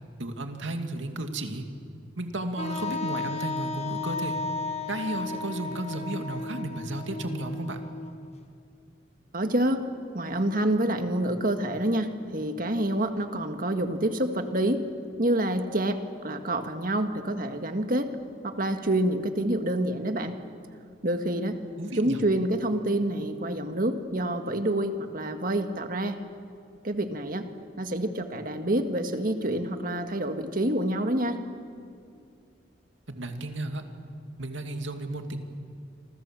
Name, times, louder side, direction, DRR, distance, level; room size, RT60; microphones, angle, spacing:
voice 1, 0.2-1.7 2.2-4.4 4.9-7.8 21.8-22.2 33.1-33.8 34.4-35.4, right 1 dB, 80° right, 5 dB, 2.4 m, -33 dB
Wind instrument woodwind instrument, 2.6-8.3, left 3 dB, 35° left, 1.5 m, -34 dB
voice 2, 9.3-9.8 10.1-14.9 15.2-18.1 18.4-20.4 21.0-21.6 21.9-26.2 26.8-27.5 27.8-31.4, right 1 dB, 45° right, 6 dB, 1.8 m, -27 dB
27.5 x 27.0 x 7.6 m, 2.3 s
head